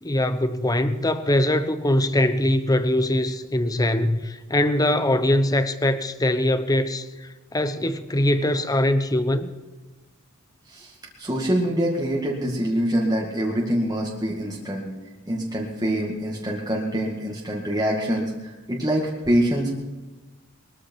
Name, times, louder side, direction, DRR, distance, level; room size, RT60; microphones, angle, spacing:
voice 1, 0.0-9.5, left 1 dB, 15° left, 0.9 m, -22 dB
voice 2, 11.2-14.9 15.3-19.8, equal, 20° right, 2.1 m, -25 dB
21.5 x 13.5 x 4.7 m
head